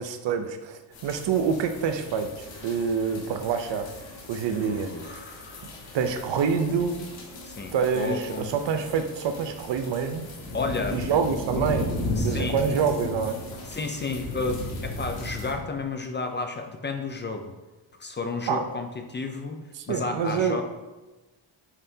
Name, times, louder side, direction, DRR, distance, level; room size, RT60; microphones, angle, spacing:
voice 1, 0.0-3.9 4.3-5.2 5.9-7.1 7.7-10.3 10.9-13.4 18.5-18.6 19.8-20.6, right 6 dB, 65° right, 8 dB, 0.7 m, -27 dB
sound 1, 0.9-15.5, left 1 dB, 75° left, 2.5 m, -36 dB
sound 2, 2.4-15.0, left 2 dB, 40° left, 2.3 m, -49 dB
voice 2, 4.6-5.7 7.4-8.5 10.5-11.0 11.5-11.7 12.2-12.6 13.7-17.5 18.0-19.6 19.9-20.6, left 3 dB, 25° left, 5 dB, 0.4 m, -32 dB
9.5 x 5.6 x 2.8 m, 1.1 s
cardioid pair, 160°, 47 cm